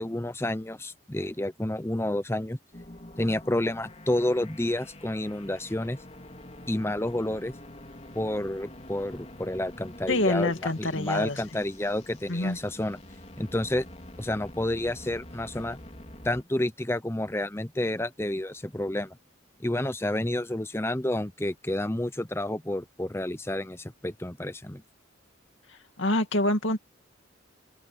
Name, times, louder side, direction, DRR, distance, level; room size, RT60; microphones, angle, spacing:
voice 1, 0.0-2.6 3.2-6.0 6.7-7.5 8.1-13.0 13.4-13.9 14.2-15.8 16.2-19.2 19.6-24.8, left 1 dB, 10° left, 0.8 m, -30 dB
sound 1, 2.7-16.4, left 1 dB, 35° left, 3.8 m, -46 dB
voice 2, 10.1-11.4 12.3-12.6 26.0-26.8, left 2 dB, 70° left, 2.4 m, -26 dB
head